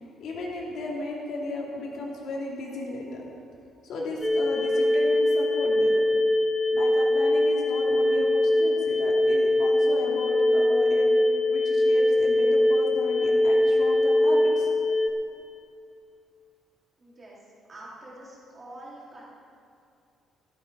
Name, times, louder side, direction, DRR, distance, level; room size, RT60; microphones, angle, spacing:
voice 1, 0.0-3.4 3.8-5.9 6.7-11.1 11.5-14.7 15.0-15.1, left 2 dB, 60° left, -2 dB, 2.6 m, -35 dB
sound 1, 4.2-15.1, left 1 dB, 5° left, 0.9 m, -22 dB
voice 2, 17.0-17.4 17.7-19.2, right 1 dB, 25° right, -6 dB, 3.5 m, -45 dB
14.0 x 12.5 x 5.1 m, 2.5 s
cardioid pair, 165°, 0 cm